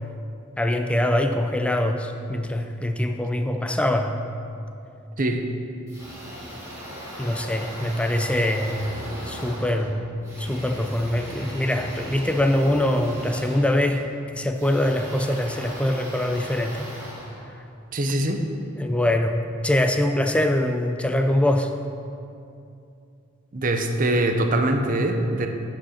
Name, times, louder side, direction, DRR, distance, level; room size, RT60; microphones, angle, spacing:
voice 1, 0.6-4.1 7.2-16.9 18.8-19.4 19.6-21.7, left 1 dB, 5° left, 6 dB, 0.4 m, -23 dB
sound 1, 5.9-18.1, equal, 15° right, 2.3 m, -38 dB
voice 2, 17.9-18.4 23.5-25.5, right 1 dB, 40° right, 5 dB, 0.7 m, -23 dB
8.6 x 5.2 x 6.4 m, 2.6 s
head